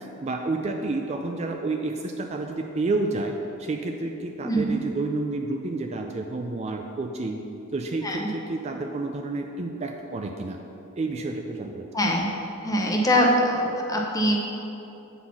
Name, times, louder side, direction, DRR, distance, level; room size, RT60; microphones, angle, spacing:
voice 1, 0.2-3.3 3.6-7.4 7.7-10.6 11.0-11.9, right 3 dB, 30° right, 3 dB, 0.3 m, -30 dB
voice 2, 11.9-12.3 12.6-14.4, equal, 15° left, -1 dB, 0.8 m, -23 dB
7.7 x 4.2 x 5.7 m, 2.9 s
head